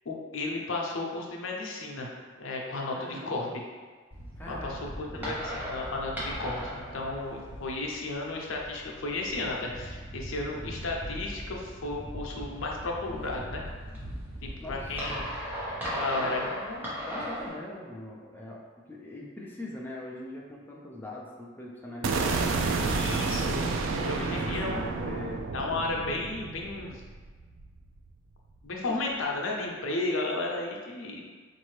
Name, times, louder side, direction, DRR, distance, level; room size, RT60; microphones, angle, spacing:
voice 1, 0.1-3.6 4.5-13.6 14.4-15.2 15.9-16.9 22.8-23.7 24.0-24.8 25.5-27.0 28.6-31.2, left 2 dB, 85° left, -1 dB, 0.6 m, -34 dB
voice 2, 3.0-3.6 4.4-5.4 14.6-15.0 15.9-16.3 16.9-23.3 23.9-25.5, left 1 dB, 10° left, -3 dB, 0.4 m, -42 dB
sound 1, 4.1-17.5, equal, 10° right, 0.8 m, -38 dB
sound 2, 22.0-28.1, right 4 dB, 75° right, 0.4 m, -30 dB
4.2 x 2.6 x 3.1 m, 1.5 s
head